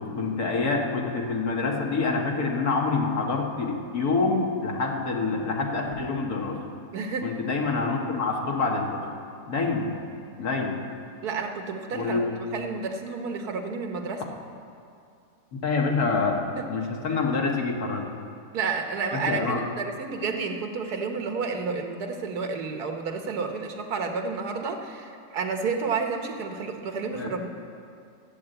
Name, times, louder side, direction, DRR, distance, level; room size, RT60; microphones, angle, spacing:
voice 1, 0.0-6.6 7.2-9.0 9.5-10.0 10.4-10.8 11.9-12.3 15.5-18.1 19.1-19.6 27.1-27.3, left 4 dB, 75° left, 0 dB, 2.1 m, -26 dB
voice 2, 6.9-7.3 11.2-14.2 16.6-16.7 18.5-27.5, right 4 dB, 85° right, 4 dB, 1.6 m, -31 dB
13.0 x 8.4 x 7.9 m, 2.5 s
omnidirectional pair, 1.6 m